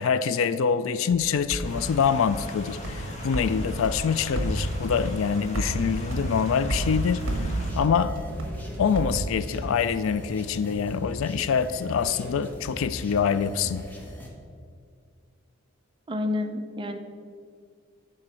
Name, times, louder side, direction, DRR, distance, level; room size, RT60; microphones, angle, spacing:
voice 1, 0.0-8.2 8.8-13.8, left 6 dB, 65° left, 14 dB, 0.3 m, -25 dB
sound 1, 1.1-9.9, right 1 dB, 60° right, 1.3 m, -32 dB
sound 2, 1.6-7.7, equal, 35° left, 1.4 m, -41 dB
sound 3, 7.2-14.3, equal, 10° left, 1.1 m, -40 dB
voice 2, 16.1-17.0, left 2 dB, 25° right, 6 dB, 0.6 m, -29 dB
10.5 x 4.3 x 6.2 m, 2.1 s
head